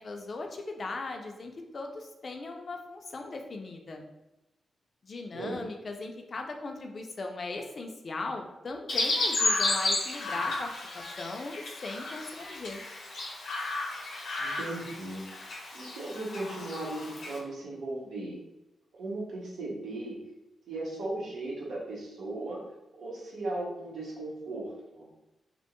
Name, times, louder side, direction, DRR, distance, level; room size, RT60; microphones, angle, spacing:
voice 1, 0.0-4.0 5.0-12.8, left 3 dB, 45° left, 3 dB, 0.3 m, -38 dB
Chirp tweet, 8.9-17.4, left 2 dB, 80° left, 0.6 m, -33 dB
voice 2, 14.4-15.2 15.7-18.4 19.0-20.2 20.7-22.6 23.0-25.1, right 2 dB, 85° right, -4 dB, 0.8 m, -37 dB
2.5 x 2.1 x 2.8 m, 0.95 s
wide cardioid pair, 115°, 0 cm